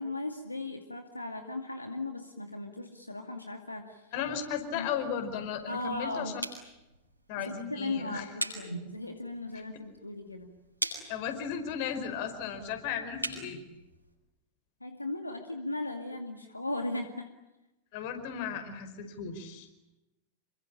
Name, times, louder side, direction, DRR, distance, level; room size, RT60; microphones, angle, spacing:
voice 1, 0.0-4.0 4.7-4.9 5.7-6.4 7.4-10.6 14.8-17.3, left 2 dB, 85° left, 5 dB, 2.3 m, -37 dB
voice 2, 4.1-6.3 7.3-8.2 11.1-13.6 17.9-19.7, left 7 dB, 50° left, 8 dB, 5.1 m, -35 dB
sound 1, 4.4-14.1, right 1 dB, 90° right, 6.7 m, -43 dB
28.0 x 24.0 x 9.0 m, 0.96 s
figure-of-eight pair, 90°, 0 cm